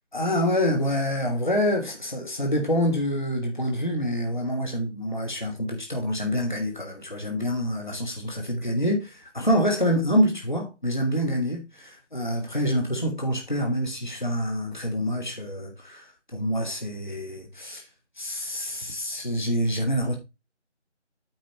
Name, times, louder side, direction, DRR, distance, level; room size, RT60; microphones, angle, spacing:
voice 1, 0.1-16.0 16.3-17.9 18.2-20.2, equal, 40° left, 1.5 m, -26 dB
9.1 x 4.4 x 4.4 m
figure-of-eight pair, 180°, 36 cm